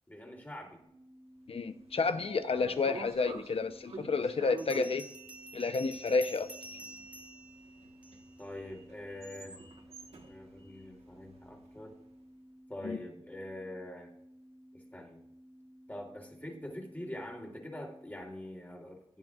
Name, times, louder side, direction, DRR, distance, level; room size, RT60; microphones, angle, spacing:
voice 1, 0.1-0.8 2.5-2.7 8.4-9.6 10.3-11.9 12.7-14.1 14.7-15.2 15.9-19.2, left 1 dB, 15° left, 0 dB, 3.1 m, -44 dB
sound 1, 0.8-18.2, equal, 40° right, 2.3 m, -57 dB
voice 2, 1.5-5.0 5.5-6.5 12.8-13.0, left 4 dB, 65° left, 10 dB, 0.8 m, -30 dB
Sliding door, 1.7-11.8, right 3 dB, 75° right, 1.4 m, -49 dB
Bell, 4.6-8.5, right 2 dB, 10° right, 1.5 m, -49 dB
16.5 x 10.5 x 2.4 m, 0.77 s
wide cardioid pair, 85°, 10 cm